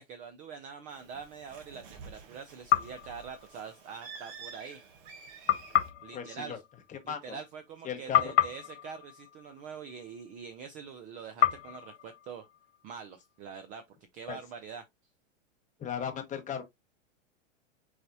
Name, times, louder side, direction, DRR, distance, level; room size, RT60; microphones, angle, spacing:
voice 1, 0.0-4.8 6.0-6.6 7.0-12.5 12.8-13.8 14.1-14.8, right 6 dB, 20° right, 0.4 m, -44 dB
Bird, 0.9-5.9, right 5 dB, 45° right, 1.4 m, -49 dB
sound 1, 2.7-4.1 5.5-7.8 8.1-10.4 11.4-13.3, left 12 dB, 65° left, 1.2 m, -31 dB
voice 2, 6.1-6.6 7.1-7.4 7.8-8.2 14.3-14.4 15.8-16.6, left 7 dB, 20° left, 1.1 m, -36 dB
4.8 x 3.9 x 2.6 m
hypercardioid pair, 130°, 38 cm